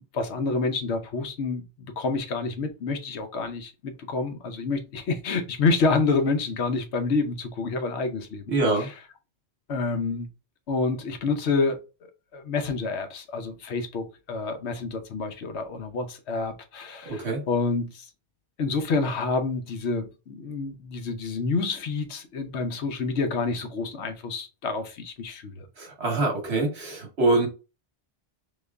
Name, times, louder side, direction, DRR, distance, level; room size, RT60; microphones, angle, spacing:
voice 1, 0.1-8.9 9.7-10.3 10.7-11.8 12.3-18.1 18.6-25.7, left 4 dB, 80° left, 1.0 m, -28 dB
voice 2, 8.5-8.9 17.1-17.4 25.8-27.5, right 2 dB, 70° right, 1.5 m, -24 dB
3.9 x 3.1 x 2.3 m
omnidirectional pair, 1.1 m